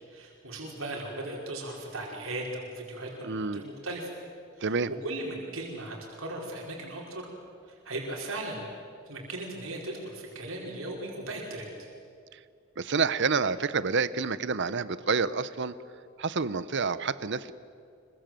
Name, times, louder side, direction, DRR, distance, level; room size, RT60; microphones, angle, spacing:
voice 1, 0.1-4.1 4.6-7.3 7.8-8.7 9.1-11.9, right 1 dB, 75° right, -2 dB, 4.9 m, -37 dB
voice 2, 3.2-3.6 4.6-4.9 12.3-12.4 12.8-15.8 16.2-17.5, right 5 dB, 60° right, 15 dB, 0.9 m, -28 dB
26.0 x 23.5 x 7.8 m, 2.3 s
head